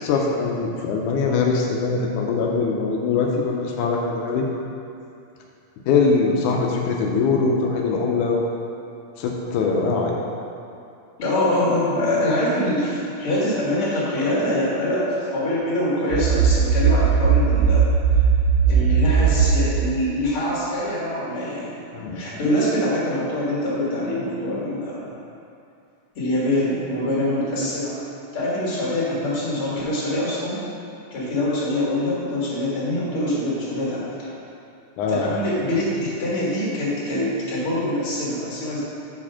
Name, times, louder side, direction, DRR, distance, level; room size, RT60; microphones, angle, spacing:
voice 1, 0.0-4.5 5.9-8.4 9.2-10.2 21.9-22.2 35.0-35.5, left 4 dB, 85° left, -1 dB, 2.1 m, -22 dB
voice 2, 11.2-17.9 18.7-21.7 22.1-25.1 26.2-28.0 28.3-30.6 31.1-34.3 35.1-38.8, left 1 dB, 50° left, -7 dB, 2.5 m, -24 dB
sound 1, 16.1-19.7, right 6 dB, 75° right, 2.0 m, -18 dB
6.8 x 4.9 x 5.6 m, 2.6 s
omnidirectional pair, 3.4 m